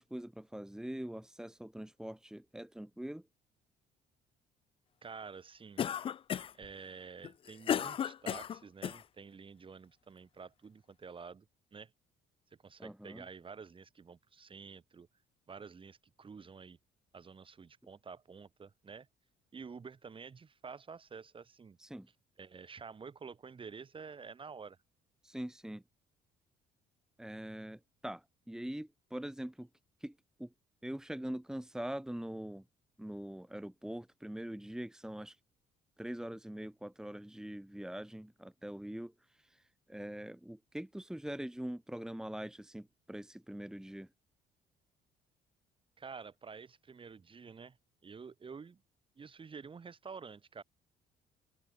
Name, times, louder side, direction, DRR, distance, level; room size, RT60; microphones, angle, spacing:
voice 1, 0.0-3.3 12.8-13.3 21.8-22.1 25.2-25.8 27.2-29.7 30.0-30.5 30.8-32.6 33.0-35.4 36.0-44.1, right 1 dB, 5° right, 3.2 m, -43 dB
voice 2, 5.0-5.8 6.5-11.9 12.6-15.1 15.5-16.8 17.1-19.1 19.5-21.8 22.4-24.8 46.0-47.8 48.0-48.8 49.2-50.6, right 5 dB, 30° right, 5.9 m, -49 dB
Cough, 5.8-6.7 7.2-9.0, left 9 dB, 35° left, 0.4 m, -34 dB
open air
cardioid pair, 110°, 17 cm